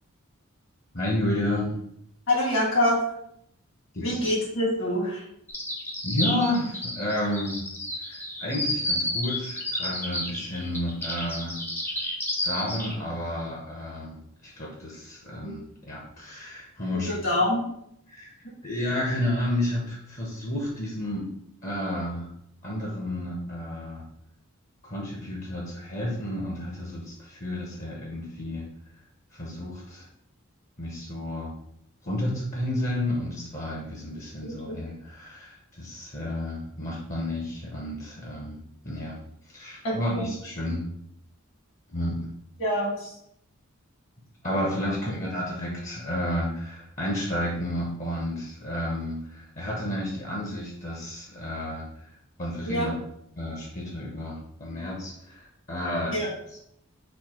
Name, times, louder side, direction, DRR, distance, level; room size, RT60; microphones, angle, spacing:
voice 1, 0.9-1.8 3.9-4.3 6.0-7.6 8.1-11.6 12.4-14.2 14.4-17.2 18.1-18.3 18.6-21.3 21.6-22.3 22.6-24.0 24.8-28.6 29.3-30.1 30.8-31.5 32.0-39.2 39.5-40.8 41.9-42.3 44.4-52.1 52.4-52.9 53.4-56.2 56.5-56.6, left 1 dB, 35° left, -3 dB, 0.8 m, -31 dB
voice 2, 2.3-3.0 4.0-5.2 15.4-15.6 17.1-17.7 34.4-34.8 39.8-40.3 42.6-43.1 52.7-52.9 56.1-56.3, left 1 dB, 60° left, -4 dB, 1.7 m, -26 dB
sound 1, 5.5-12.9, left 1 dB, 10° left, 0.6 m, -31 dB
4.4 x 2.7 x 4.4 m, 0.74 s
head